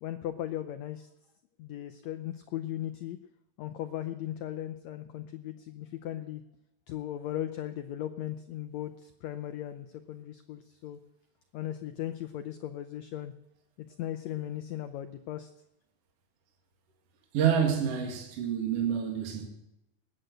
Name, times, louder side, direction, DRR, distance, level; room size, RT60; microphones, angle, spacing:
voice 1, 0.0-1.1 1.6-3.2 3.6-6.4 6.9-11.0 11.5-13.3 13.8-15.5, left 12 dB, 90° left, 1.5 m, -37 dB
voice 2, 17.3-19.5, right 8 dB, 50° right, 2.6 m, -28 dB
20.0 x 7.9 x 7.9 m
omnidirectional pair, 4.0 m